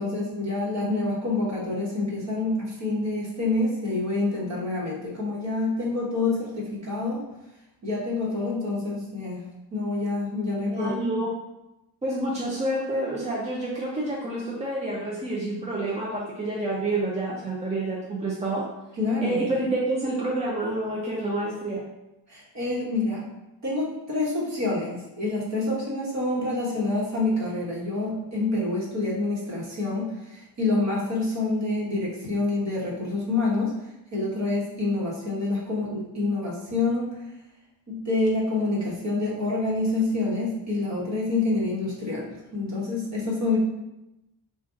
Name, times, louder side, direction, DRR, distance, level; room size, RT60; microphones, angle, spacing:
voice 1, 0.0-7.2 7.8-9.4 9.7-10.9 19.0-19.4 22.3-23.2 23.6-33.7 34.1-37.1 37.9-43.6, left 2 dB, 40° right, -4 dB, 1.3 m, -27 dB
voice 2, 10.7-11.3 12.0-18.6 19.2-21.8, right 2 dB, 15° right, -4 dB, 0.5 m, -28 dB
3.7 x 2.5 x 3.8 m, 0.95 s
cardioid pair, 135°, 42 cm